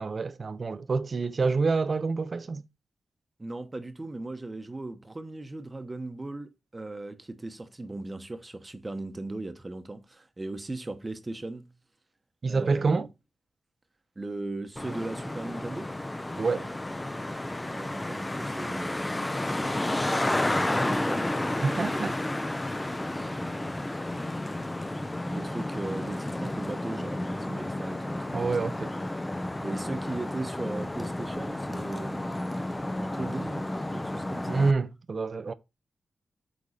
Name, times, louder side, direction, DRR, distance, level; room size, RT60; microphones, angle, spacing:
voice 1, 0.0-2.6 12.4-13.1 16.4-16.7 21.6-22.2 28.3-28.9 34.5-35.5, right 4 dB, 45° right, 0.6 m, -27 dB
voice 2, 3.4-11.7 12.5-13.0 14.2-15.9 17.6-19.1 20.2-21.4 21.9-22.2 23.2-24.0 25.3-28.7 29.6-32.4 32.8-34.6, right 2 dB, 20° right, 1.0 m, -38 dB
Traffic noise roadway noise, 14.8-34.7, left 1 dB, 15° left, 0.6 m, -31 dB
8.4 x 3.7 x 5.1 m
wide cardioid pair, 115°, 0 cm